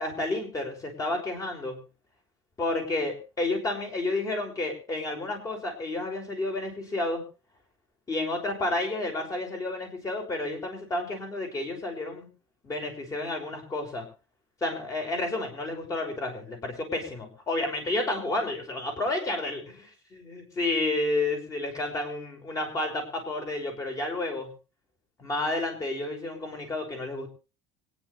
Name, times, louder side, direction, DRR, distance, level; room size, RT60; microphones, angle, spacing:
voice 1, 0.0-1.8 2.6-7.2 8.1-12.3 12.6-14.1 14.6-24.5 25.2-27.3, left 2 dB, 25° left, 3 dB, 5.6 m, -31 dB
25.0 x 10.0 x 3.3 m, 0.33 s
cardioid pair, 145°, 14 cm